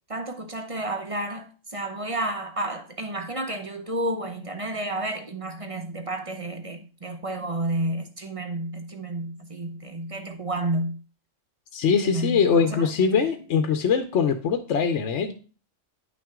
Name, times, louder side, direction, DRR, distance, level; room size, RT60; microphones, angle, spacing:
voice 1, 0.1-10.9 12.0-13.1, right 1 dB, 30° right, 0.8 m, -31 dB
voice 2, 11.7-15.3, left 6 dB, 65° left, 1.0 m, -22 dB
9.5 x 5.9 x 3.6 m
omnidirectional pair, 1.3 m